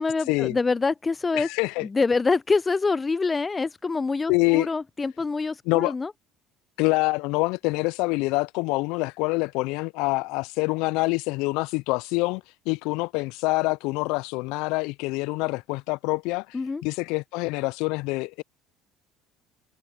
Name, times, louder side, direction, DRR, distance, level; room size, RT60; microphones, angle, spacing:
voice 1, 0.0-1.5 1.8-6.1 16.5-16.8, left 4 dB, 25° left, 0.5 m, -25 dB
voice 2, 1.3-1.9 4.3-4.7 5.7-5.9 6.8-12.4 12.7-16.6 16.8-18.4, left 25 dB, 75° left, 0.3 m, -26 dB
hypercardioid pair, 65°, 0 cm